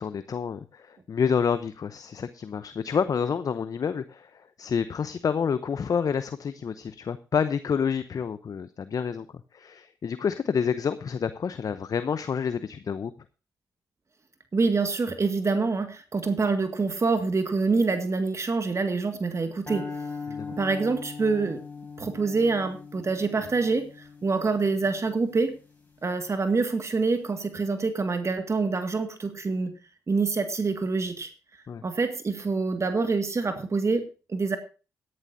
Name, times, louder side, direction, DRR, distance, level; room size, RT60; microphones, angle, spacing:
voice 1, 0.0-9.3 9.5-13.1 20.3-20.6 31.7-31.8, left 6 dB, 50° left, 13 dB, 0.8 m, -28 dB
voice 2, 14.5-19.9 20.5-21.6 22.0-25.6 26.0-29.7 30.1-31.3 31.8-34.6, right 4 dB, 40° right, 8 dB, 1.9 m, -26 dB
sound 1, 19.7-26.0, left 4 dB, 20° left, 7.1 m, -40 dB
17.5 x 11.0 x 2.7 m, 0.33 s
supercardioid pair, 50°, 8 cm